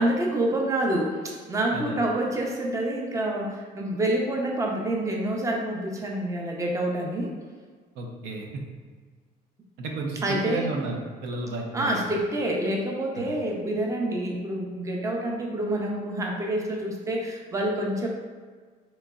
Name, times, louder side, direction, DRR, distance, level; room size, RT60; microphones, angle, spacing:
voice 1, 0.0-7.3 10.2-10.7 11.7-18.1, right 1 dB, 20° right, -1 dB, 0.5 m, -27 dB
voice 2, 8.0-8.6 9.8-12.0 13.2-13.3, right 3 dB, 80° right, 1 dB, 0.6 m, -33 dB
3.8 x 3.0 x 2.3 m, 1.5 s
cardioid pair, 110°, 17 cm